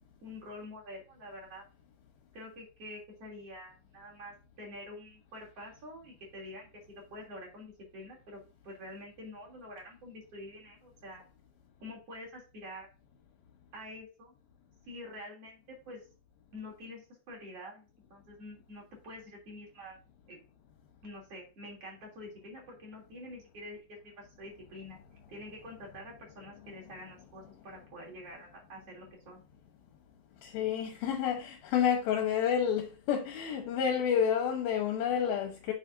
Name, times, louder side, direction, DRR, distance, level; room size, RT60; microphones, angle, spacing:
voice 1, 0.2-1.6 2.3-11.2 11.8-12.9 13.7-14.3 14.9-16.1 16.5-20.0 20.3-20.4 21.0-25.0 25.3-29.4, left 1 dB, 40° right, 4.0 m, -47 dB
voice 2, 30.4-35.7, left 8 dB, 80° left, 3.0 m, -29 dB
9.9 x 7.3 x 2.7 m
omnidirectional pair, 4.3 m